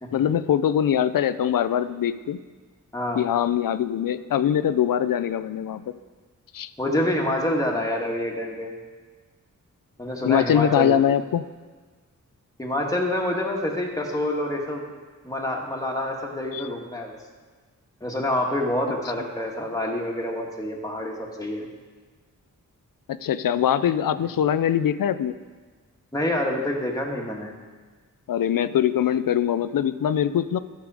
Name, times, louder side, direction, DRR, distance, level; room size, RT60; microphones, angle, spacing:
voice 1, 0.1-2.4 3.1-5.9 6.5-6.7 10.2-11.4 16.5-16.6 23.1-25.4 28.3-30.6, left 9 dB, 85° left, 13 dB, 0.5 m, -22 dB
voice 2, 2.9-3.2 6.8-8.7 10.0-11.0 12.6-14.8 15.2-17.2 18.0-21.7 26.1-27.5, left 1 dB, 10° left, 0 dB, 1.7 m, -27 dB
14.5 x 6.9 x 4.9 m, 1.4 s
wide cardioid pair, 105°, 32 cm